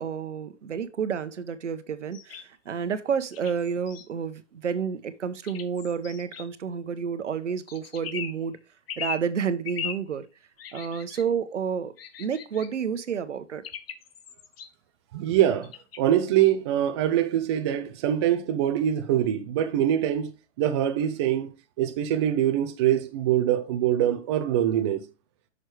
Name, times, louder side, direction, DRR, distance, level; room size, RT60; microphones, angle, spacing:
voice 1, 0.0-8.6 9.0-10.2 10.7-11.9 12.2-13.7, right 7 dB, 80° right, 1.0 m, -30 dB
sound 1, 2.1-2.5 3.3-4.1 5.4-6.5 7.7-8.4 8.9-9.3 9.6-10.0 10.6-11.2 12.0-12.7 13.6-14.7 15.6-16.2, left 8 dB, 55° left, 1.0 m, -38 dB
voice 2, 15.1-15.7 16.0-20.3 20.6-21.5 21.8-25.0, right 11 dB, 25° right, 0.5 m, -24 dB
6.3 x 6.2 x 3.2 m
hypercardioid pair, 140°, 35 cm